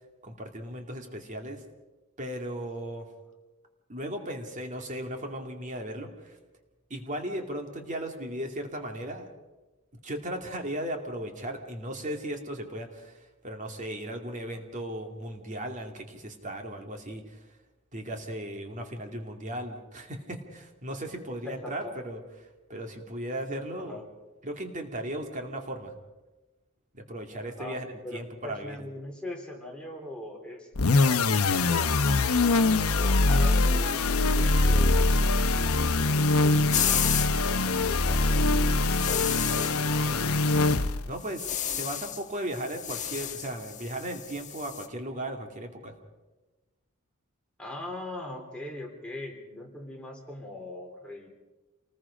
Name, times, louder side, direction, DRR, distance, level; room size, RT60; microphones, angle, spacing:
voice 1, 0.2-1.6 2.2-3.1 3.9-6.4 6.9-9.3 10.0-17.6 17.9-24.0 24.4-25.9 26.9-28.8 41.1-45.9, right 1 dB, 35° right, 4 dB, 2.4 m, -36 dB
voice 2, 21.4-21.9 23.8-24.0 27.6-32.0 32.9-35.5 35.8-40.4 47.6-51.3, left 1 dB, 5° left, 0 dB, 3.4 m, -41 dB
sound 1, 30.7-41.2, left 3 dB, 75° left, 0.9 m, -23 dB
sound 2, 36.7-37.3 38.8-39.8 41.2-42.2 42.5-44.9, left 10 dB, 35° left, 1.2 m, -31 dB
27.5 x 20.5 x 5.1 m, 1.1 s
head